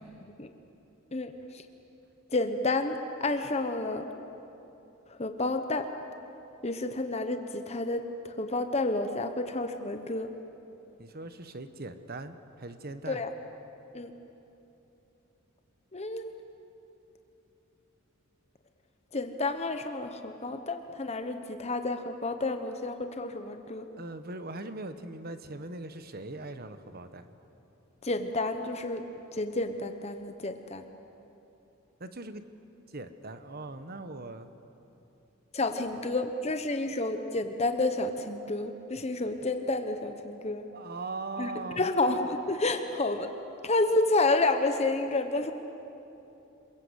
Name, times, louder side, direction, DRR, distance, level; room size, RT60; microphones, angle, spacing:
voice 1, 1.1-1.6 2.3-4.1 5.2-5.9 6.6-8.1 8.4-10.3 13.1-13.3 13.9-14.1 15.9-16.3 19.1-23.9 28.0-29.0 29.3-30.8 35.5-40.7 41.4-41.5 41.8-43.3 43.6-45.5, left 2 dB, 30° left, 7 dB, 1.0 m, -30 dB
voice 2, 11.0-13.2 24.0-27.3 32.0-32.4 32.9-34.5 40.7-41.9, right 2 dB, 45° right, 10 dB, 1.2 m, -40 dB
28.0 x 22.0 x 8.1 m, 3.0 s
head